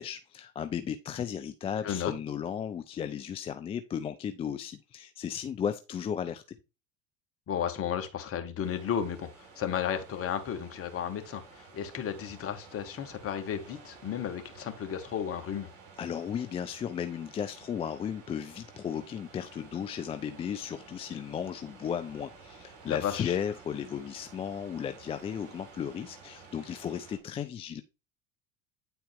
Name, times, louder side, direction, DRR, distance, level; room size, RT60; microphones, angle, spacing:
voice 1, 0.0-6.4 16.0-27.8, left 8 dB, 15° left, 0.3 m, -35 dB
voice 2, 7.5-9.3 9.6-15.7 22.8-23.3, left 8 dB, 35° left, 1.5 m, -33 dB
sound 1, 8.6-27.2, right 4 dB, 50° right, 4.0 m, -53 dB
9.0 x 4.2 x 3.5 m
hypercardioid pair, 80°, 39 cm